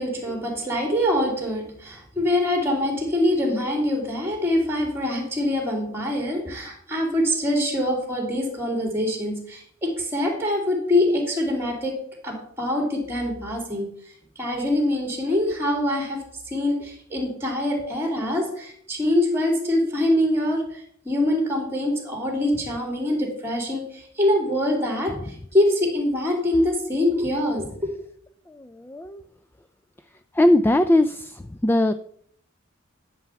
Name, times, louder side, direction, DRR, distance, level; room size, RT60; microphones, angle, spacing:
voice 1, 0.0-12.0 12.2-13.9 14.4-25.1 25.5-27.9, left 1 dB, 10° right, 2 dB, 2.8 m, -24 dB
voice 2, 28.5-29.2 30.3-31.9, left 1 dB, 10° left, 10 dB, 0.3 m, -21 dB
11.0 x 6.9 x 4.6 m, 0.64 s
head